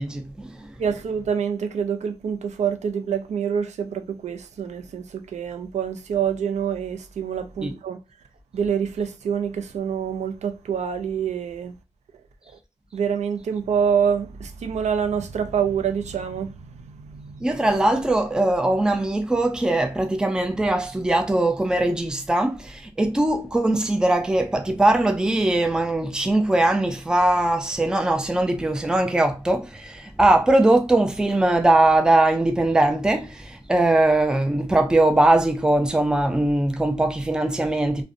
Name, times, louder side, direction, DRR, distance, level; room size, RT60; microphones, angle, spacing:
voice 1, 0.0-0.8 7.6-7.7 17.4-38.0, right 2 dB, 5° right, 0.3 m, -21 dB
voice 2, 0.8-8.0 8.5-11.7 12.9-17.4, right 7 dB, 75° right, 0.4 m, -26 dB
2.5 x 2.1 x 2.5 m
wide cardioid pair, 145°, 12 cm